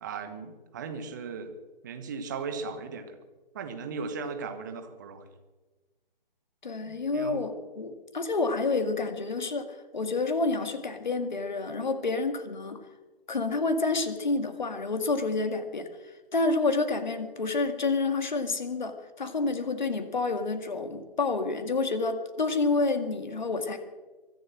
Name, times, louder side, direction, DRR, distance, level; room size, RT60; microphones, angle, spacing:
voice 1, 0.0-1.5 1.8-3.2 3.5-5.3 6.9-7.5, right 5 dB, 20° right, 8 dB, 1.3 m, -37 dB
voice 2, 6.6-9.7 9.9-12.8 13.3-15.9 16.3-23.8, left 3 dB, 50° left, 8 dB, 2.1 m, -29 dB
23.5 x 8.0 x 7.6 m, 1.3 s
figure-of-eight pair, 145°, 29 cm